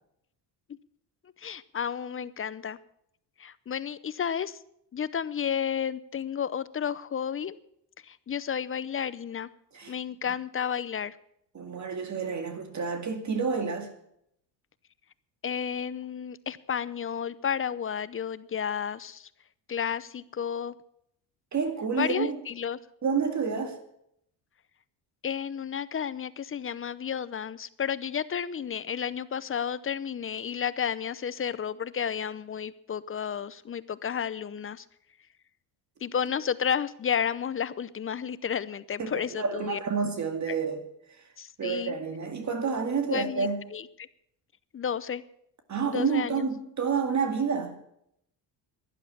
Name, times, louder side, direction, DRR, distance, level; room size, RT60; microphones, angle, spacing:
voice 1, 1.4-2.8 3.4-4.6 4.9-7.6 8.0-9.5 9.9-11.2 15.4-19.3 19.7-20.8 22.0-22.8 25.2-34.9 36.0-39.8 40.5-40.6 41.4-42.0 43.1-43.9 44.7-45.2 45.8-46.4, left 8 dB, 30° left, 0.7 m, -32 dB
voice 2, 11.5-13.9 21.5-22.4 23.0-23.8 39.0-40.8 41.6-43.7 45.7-47.8, right 5 dB, 40° right, 2.2 m, -29 dB
11.5 x 11.0 x 8.5 m
supercardioid pair, 85°, 44 cm